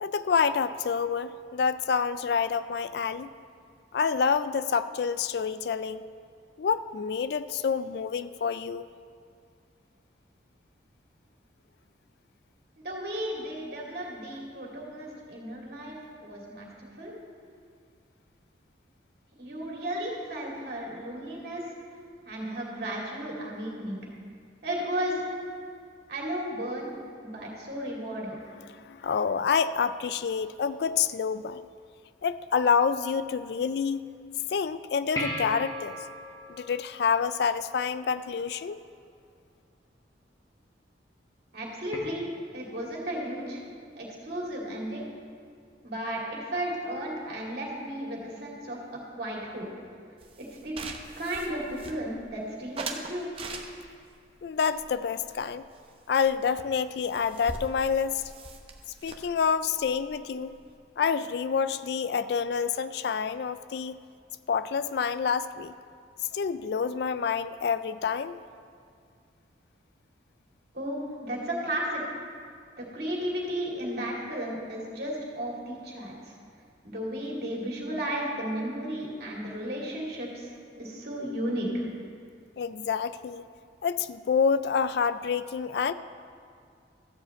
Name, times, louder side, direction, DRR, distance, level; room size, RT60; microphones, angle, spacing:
voice 1, 0.0-3.3 3.9-6.0 6.6-8.9 28.6-31.7 32.2-34.1 34.5-36.0 36.5-38.8 54.4-55.6 56.1-58.2 59.0-60.5 61.0-64.0 64.5-65.7 66.3-68.4 82.6-83.4 83.8-85.9, left 6 dB, 60° left, 14 dB, 0.3 m, -28 dB
voice 2, 12.8-16.0 16.2-16.7 17.0-17.1 19.4-21.7 22.3-24.0 24.6-25.2 26.1-26.9 27.2-28.4 41.5-43.6 43.9-45.1 45.8-49.7 50.4-50.8 51.2-53.3 70.7-72.0 72.8-76.3 76.8-81.9, right 1 dB, 55° right, -3 dB, 2.5 m, -34 dB
sound 1, 35.2-37.9 41.9-42.0, equal, 20° left, 1.4 m, -36 dB
sound 2, 50.2-52.3 52.8-54.1 54.6-55.9 56.2-56.3 56.6-56.7 56.9-60.8, right 3 dB, 30° right, 0.8 m, -41 dB
14.0 x 5.0 x 7.7 m, 2.3 s
head